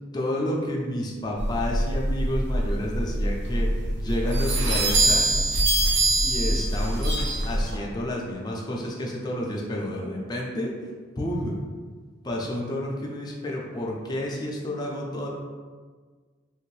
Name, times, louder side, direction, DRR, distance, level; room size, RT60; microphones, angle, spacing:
voice 1, 0.1-5.3 6.2-7.1 7.4-10.7 11.2-11.5 12.2-15.3, left 1 dB, 20° left, -2 dB, 0.5 m, -30 dB
sound 1, 1.4-7.7, right 1 dB, 65° right, 0.7 m, -24 dB
3.1 x 2.6 x 3.2 m, 1.5 s
head